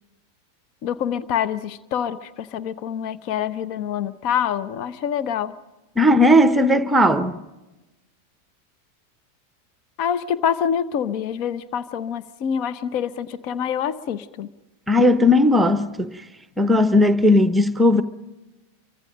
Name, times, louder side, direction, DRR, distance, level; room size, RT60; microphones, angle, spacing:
voice 1, 0.8-5.5 10.0-14.5, left 8 dB, 45° left, 1.0 m, -26 dB
voice 2, 6.0-7.4 14.9-16.2 16.6-18.0, left 1 dB, 5° right, 1.0 m, -16 dB
28.5 x 24.5 x 5.2 m
figure-of-eight pair, 90°, 0 cm